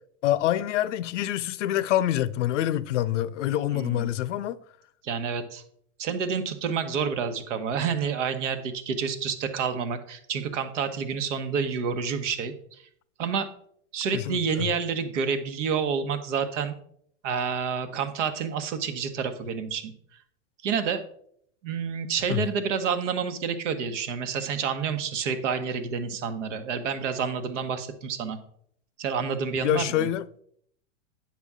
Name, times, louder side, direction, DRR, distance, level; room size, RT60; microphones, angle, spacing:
voice 1, 0.2-4.6 14.1-14.6 22.3-22.4 29.6-30.3, left 12 dB, 75° left, 0.7 m, -26 dB
voice 2, 3.7-4.1 5.0-5.6 6.0-12.8 13.2-13.5 13.9-16.7 17.2-19.9 20.6-21.0 21.6-28.4 29.0-30.1, right 6 dB, 75° right, 1.2 m, -29 dB
9.4 x 5.9 x 3.6 m
supercardioid pair, 135°, 37 cm